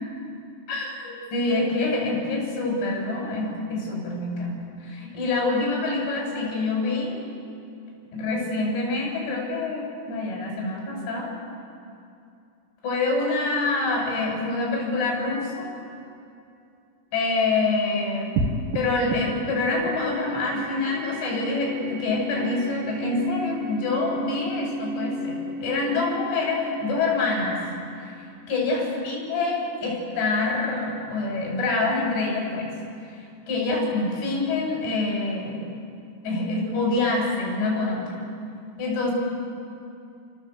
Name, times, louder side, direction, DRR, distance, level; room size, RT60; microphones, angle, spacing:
voice 1, 0.7-7.2 8.1-11.3 12.8-15.7 17.1-18.3 18.7-27.6 28.5-32.7 33.5-35.6 36.2-38.1 38.8-39.1, left 3 dB, 65° left, -2 dB, 10.0 m, -26 dB
sound 1, 18.4-29.0, right 1 dB, 65° right, 2.6 m, -33 dB
28.0 x 24.5 x 8.3 m, 2.5 s
omnidirectional pair, 5.9 m